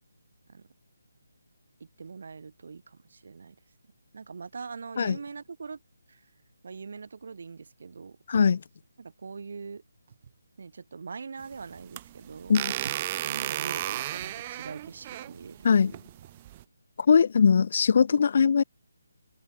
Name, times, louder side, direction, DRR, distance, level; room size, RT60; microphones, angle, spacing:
voice 1, 1.8-3.6 4.1-5.8 6.1-6.2 6.6-8.2 9.0-9.8 10.6-12.6 13.2-15.9 18.1-18.2, right 5 dB, 55° right, 5.1 m, -42 dB
voice 2, 8.3-8.6 12.5-12.7 15.6-15.9 17.1-18.6, left 6 dB, 45° left, 1.0 m, -20 dB
sound 1, 8.3-9.4 10.1-10.5 12.4-13.3 14.3-14.6, right 7 dB, 40° right, 3.9 m, -49 dB
sound 2, 11.4-16.6, right 14 dB, 25° right, 0.5 m, -34 dB
open air
figure-of-eight pair, 165°, 0 cm